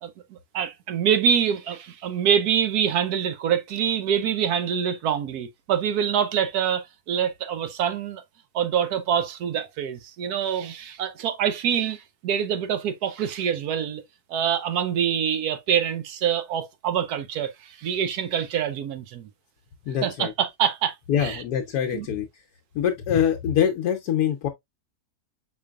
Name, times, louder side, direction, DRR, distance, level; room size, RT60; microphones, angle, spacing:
voice 1, 0.0-8.2 8.5-14.0 14.3-19.3 20.0-21.4 21.9-22.1, right 8 dB, 75° right, 1.2 m, -25 dB
voice 2, 19.9-20.3 21.1-22.4 22.7-24.5, left 9 dB, 70° left, 1.2 m, -24 dB
5.2 x 4.4 x 2.3 m
omnidirectional pair, 1.7 m